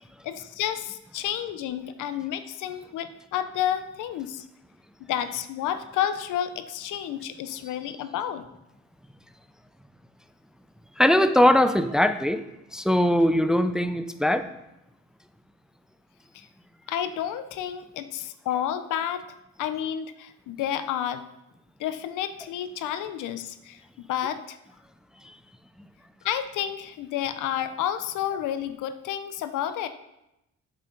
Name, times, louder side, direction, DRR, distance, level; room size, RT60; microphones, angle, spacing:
voice 1, 0.2-4.5 5.1-8.5 16.3-16.5 16.9-19.2 19.6-21.2 21.8-24.6 26.2-29.9, left 10 dB, 85° left, 11 dB, 0.7 m, -30 dB
voice 2, 11.0-12.4 12.7-14.5 25.2-25.4 25.8-25.9, left 1 dB, ahead, 10 dB, 0.4 m, -21 dB
8.2 x 6.7 x 3.9 m, 0.88 s
cardioid pair, 90°, 30 cm